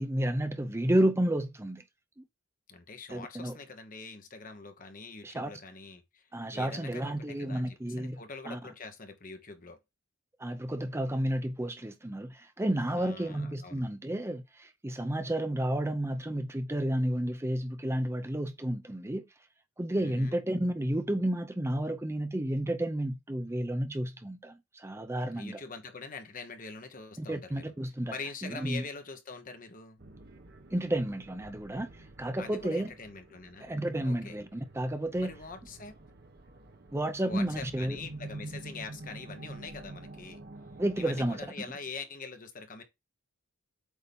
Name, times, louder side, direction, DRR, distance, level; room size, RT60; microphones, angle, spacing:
voice 1, 0.0-1.8 2.2-2.3 3.1-3.5 5.2-5.5 6.3-8.6 10.4-19.3 19.8-25.6 27.2-28.1 28.4-28.8 30.7-32.9 33.6-35.3 36.9-38.0 40.8-41.4, right 1 dB, 15° right, 0.6 m, -31 dB
voice 2, 2.7-6.3 6.5-9.8 13.0-13.8 19.9-20.4 25.3-27.6 28.1-30.0 32.4-33.7 34.0-34.3 35.2-36.0 37.2-40.4 41.0-42.8, left 4 dB, 45° left, 1.1 m, -44 dB
sound 1, 30.0-41.5, right 2 dB, 55° right, 1.0 m, -48 dB
8.2 x 2.9 x 5.3 m
head